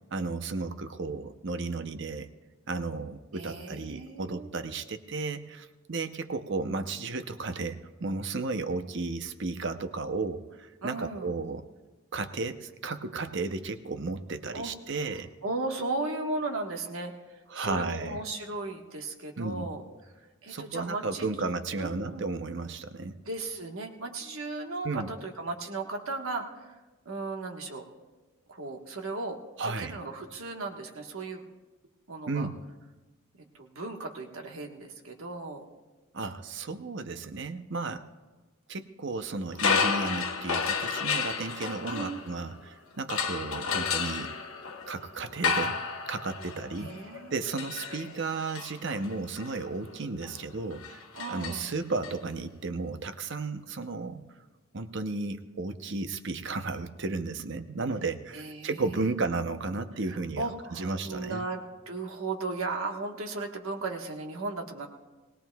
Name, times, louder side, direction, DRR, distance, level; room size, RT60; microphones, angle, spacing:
voice 1, 0.1-2.3 2.7-11.6 12.1-15.3 17.5-18.2 19.4-19.7 20.5-23.2 24.8-25.1 29.6-29.9 32.3-32.6 36.1-38.0 38.7-44.4 44.9-47.0 47.3-54.2 54.7-61.5, right 3 dB, 55° right, 9 dB, 0.7 m, -34 dB
voice 2, 3.3-4.5 10.8-11.3 14.5-14.7 15.4-17.1 17.6-19.8 20.4-21.3 21.8-22.2 23.2-26.7 27.0-27.8 28.5-31.4 32.1-32.5 33.4-35.6 41.8-42.2 46.8-47.4 51.1-51.7 58.3-58.8 60.1-64.9, right 3 dB, 70° right, 2 dB, 1.3 m, -36 dB
sound 1, 39.5-42.6 43.1-52.1, left 5 dB, 70° left, 1.1 m, -32 dB
20.5 x 18.5 x 2.3 m, 1.2 s
head